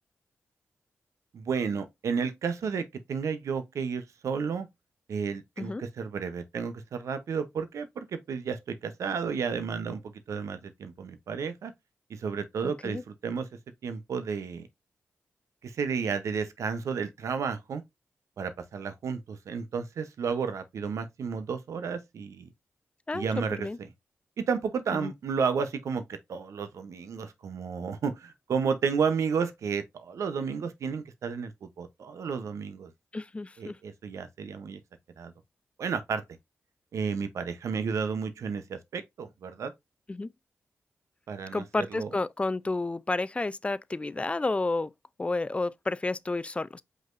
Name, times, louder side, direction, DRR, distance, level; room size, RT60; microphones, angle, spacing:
voice 1, 1.3-4.7 5.1-11.7 12.1-13.5 13.8-14.7 15.6-17.8 18.4-22.5 23.1-23.7 24.4-32.9 33.6-34.8 35.2-35.3 35.8-36.2 36.9-39.7 41.3-42.1, right 6 dB, 85° right, 0.8 m, -32 dB
voice 2, 12.6-13.0 23.1-23.3 23.6-23.8 25.0-25.1 33.1-33.8 40.1-40.3 41.5-44.9 45.2-46.8, left 2 dB, 25° left, 0.4 m, -31 dB
5.1 x 4.0 x 2.5 m
cardioid pair, 65°, 5 cm